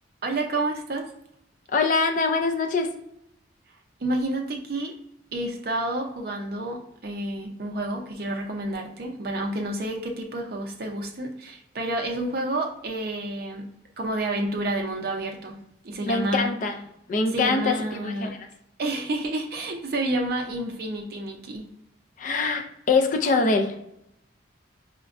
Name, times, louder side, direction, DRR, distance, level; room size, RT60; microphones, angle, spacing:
voice 1, 0.2-1.1 4.0-4.9 5.3-13.7 14.0-15.6 15.8-16.5 17.3-18.3 18.8-21.7, right 1 dB, 50° right, 2 dB, 0.5 m, -29 dB
voice 2, 1.7-2.9 16.1-16.8 17.1-17.8 18.0-18.4 22.2-23.7, left 4 dB, 40° left, 5 dB, 0.4 m, -23 dB
5.0 x 2.2 x 2.4 m, 0.77 s
head